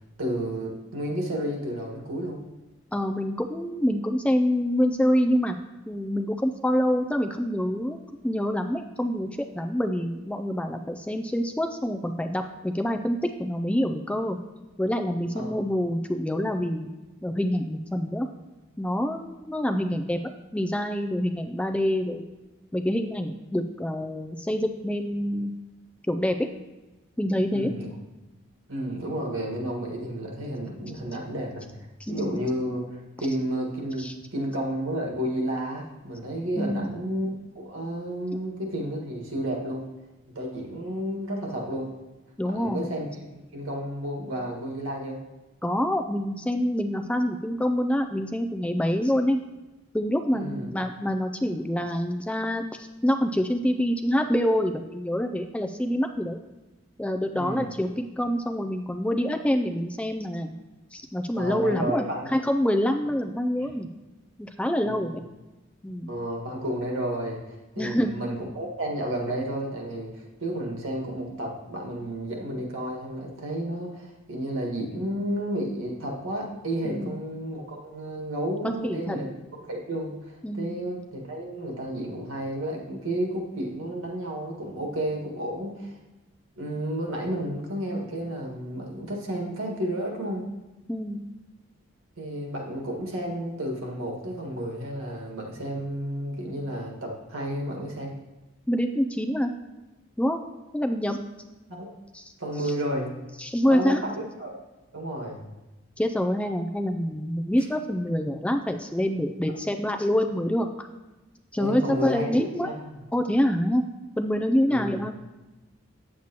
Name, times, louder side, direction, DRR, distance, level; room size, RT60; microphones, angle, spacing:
voice 1, 0.2-2.4 15.3-15.5 27.5-27.9 28.7-31.7 32.1-39.9 40.3-41.9 42.4-43.1 43.3-45.2 50.3-50.7 57.3-57.7 61.3-62.3 64.8-65.0 66.1-67.4 67.7-79.3 79.6-86.0 86.6-90.4 92.2-98.1 101.7-101.9 102.4-103.1 103.6-104.5 104.9-105.4 111.6-112.7 114.7-115.0, right 1 dB, 90° right, 0 dB, 1.7 m, -32 dB
voice 2, 2.9-5.6 5.9-8.0 8.2-9.3 9.5-14.4 14.8-16.9 17.2-18.3 18.8-20.2 20.5-22.3 22.7-25.5 26.1-26.3 27.2-27.7 32.0-32.4 34.0-34.1 36.6-37.0 42.4-42.9 45.6-49.4 49.9-56.4 57.0-60.5 60.9-63.9 64.4-65.2 65.8-66.1 67.8-68.1 76.8-77.1 78.6-79.2 80.4-80.8 90.9-91.2 98.7-99.5 100.2-100.4 100.7-101.2 102.1-102.3 102.6-102.7 103.4-104.1 106.0-110.9 111.5-112.7 113.1-113.8 114.2-115.1, equal, 5° left, 6 dB, 0.3 m, -26 dB
8.7 x 7.5 x 2.9 m, 1.1 s
head